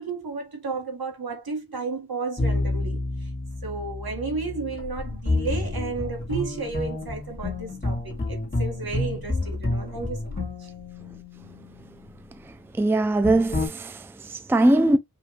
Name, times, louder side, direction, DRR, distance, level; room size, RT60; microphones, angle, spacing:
voice 1, 0.0-3.0 3.6-10.7, right 4 dB, 70° right, 1.9 m, -33 dB
sound 1, 2.4-11.8 13.2-13.7, left 2 dB, 25° left, 1.8 m, -29 dB
voice 2, 12.8-15.0, right 1 dB, 5° right, 0.5 m, -21 dB
5.7 x 2.7 x 3.1 m
wide cardioid pair, 85°, 38 cm